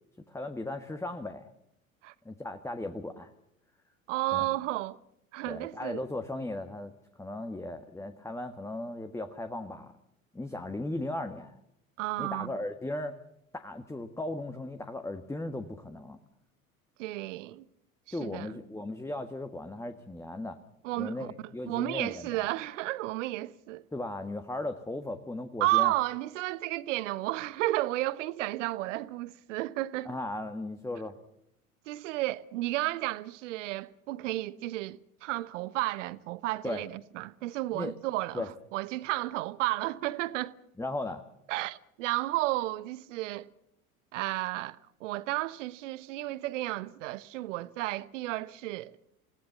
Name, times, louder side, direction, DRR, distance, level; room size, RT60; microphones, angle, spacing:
voice 1, 0.3-1.5 2.2-3.3 4.3-4.5 5.4-6.9 7.2-9.9 10.3-11.5 12.2-13.1 13.5-16.2 18.1-20.6 21.0-22.5 23.9-25.9 30.0-31.2 36.6-36.8 37.7-37.9 38.3-38.5 40.8-41.2, left 2 dB, 5° left, 1.6 m, -36 dB
voice 2, 4.1-5.0 5.3-6.0 12.0-12.5 17.0-17.6 18.2-18.5 20.8-23.8 25.6-30.1 31.9-40.5 41.5-43.5 44.1-49.0, right 18 dB, 60° right, 1.1 m, -32 dB
28.5 x 18.0 x 7.0 m
figure-of-eight pair, 70°, 42 cm